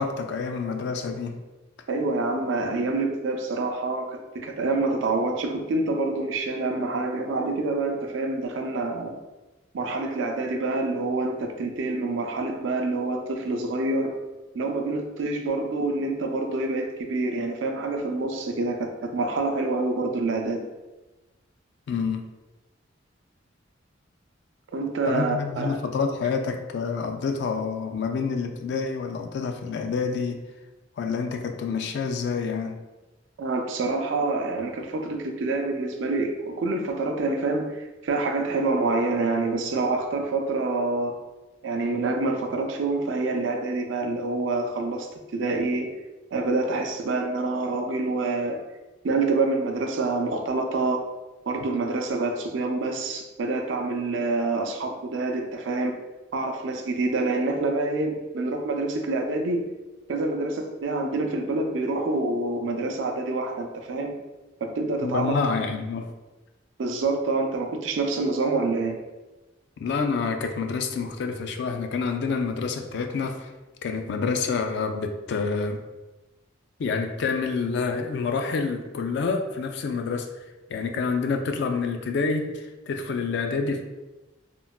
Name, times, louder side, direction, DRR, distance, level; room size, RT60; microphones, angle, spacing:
voice 1, 0.0-1.4 21.9-22.3 25.1-30.4 31.0-32.8 65.0-66.1 69.8-73.5 73.8-75.8 76.8-80.3 80.7-83.8, left 5 dB, 60° left, 5 dB, 0.3 m, -28 dB
voice 2, 1.9-9.2 9.7-14.1 14.5-20.7 24.7-25.8 33.4-41.2 41.6-45.9 46.3-48.6 49.0-51.0 51.5-55.9 56.3-59.7 60.1-64.1 64.6-65.3 66.8-69.0, right 3 dB, 80° right, 3 dB, 0.4 m, -27 dB
3.7 x 2.1 x 2.3 m, 1.1 s
head